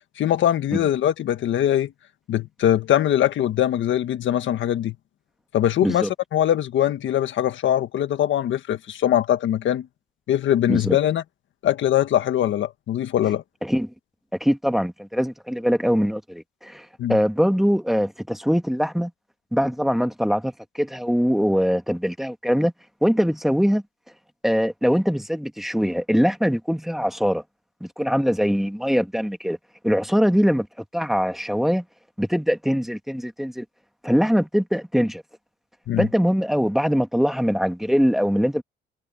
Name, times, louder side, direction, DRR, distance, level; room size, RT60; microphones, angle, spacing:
voice 1, 0.2-1.9 2.3-4.9 5.5-9.9 10.3-11.2 11.6-13.4 17.0-17.2 35.9-36.1, left 11 dB, 70° left, 1.5 m, -22 dB
voice 2, 14.4-19.1 19.5-22.7 23.0-23.8 24.4-27.4 27.8-29.6 29.8-30.7 30.9-31.8 32.2-33.6 34.0-35.2 36.0-38.6, equal, ahead, 1.8 m, -22 dB
cardioid pair, 90°, 20 cm